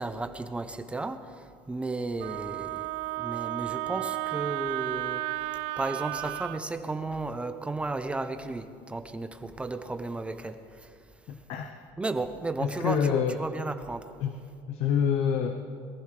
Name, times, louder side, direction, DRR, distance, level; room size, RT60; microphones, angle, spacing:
voice 1, 0.0-2.9 3.2-5.3 5.8-10.9 12.0-14.1, right 2 dB, 10° right, 9 dB, 0.7 m, -34 dB
Wind instrument woodwind instrument, 2.2-6.6, right 18 dB, 75° right, 0.4 m, -33 dB
voice 2, 11.3-11.7 12.6-13.4 14.2-14.4 14.7-15.6, left 7 dB, 65° left, 6 dB, 0.9 m, -27 dB
22.0 x 15.0 x 3.3 m, 2.3 s
cardioid pair, 140°, 11 cm